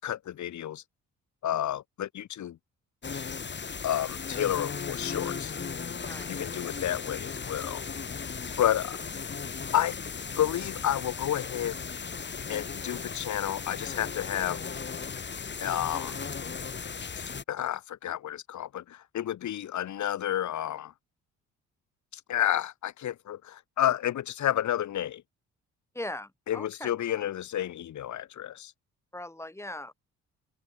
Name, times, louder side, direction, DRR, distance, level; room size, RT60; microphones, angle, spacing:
voice 1, 0.0-0.8 1.4-2.6 3.8-5.5 6.3-7.8 8.6-9.0 9.7-10.0 10.4-11.8 12.5-14.6 15.6-16.2 17.2-20.9 22.1-25.2 26.5-28.7, left 11 dB, 70° left, 4.2 m, -30 dB
sound 1, 3.0-17.4, left 5 dB, 35° left, 4.1 m, -36 dB
voice 2, 6.1-6.6 25.9-26.9 29.1-29.9, left 1 dB, 10° left, 5.8 m, -40 dB
open air
cardioid pair, 90°, 30 cm